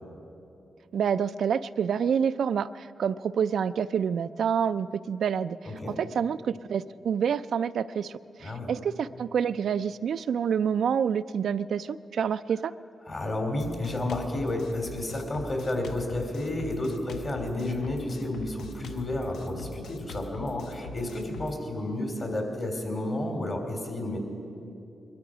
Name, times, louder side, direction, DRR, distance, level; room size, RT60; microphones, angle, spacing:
voice 1, 0.9-5.6 6.0-12.7, right 7 dB, 80° right, 13 dB, 0.3 m, -27 dB
voice 2, 5.6-6.0 8.4-8.7 13.1-24.2, left 1 dB, 45° left, 2 dB, 3.2 m, -31 dB
Drum kit, 13.6-21.5, left 3 dB, 90° left, 0.6 m, -43 dB
22.0 x 13.0 x 5.0 m, 2.7 s
cardioid pair, 70°, 0 cm